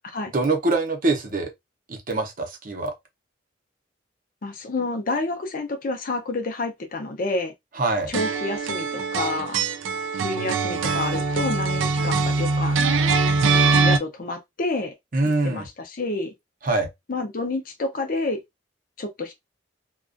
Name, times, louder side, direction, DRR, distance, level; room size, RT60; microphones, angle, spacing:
voice 1, 0.3-1.5 1.9-2.9 7.8-8.1 15.1-15.7 16.6-16.9, right 2 dB, 45° right, 0.7 m, -24 dB
voice 2, 4.4-7.5 8.1-9.6 10.2-12.9 13.5-14.9 15.4-16.3 17.1-18.4 19.0-19.3, left 2 dB, 45° left, 0.5 m, -29 dB
sound 1, 8.1-14.0, right 4 dB, 85° right, 0.4 m, -22 dB
2.4 x 2.2 x 2.4 m
head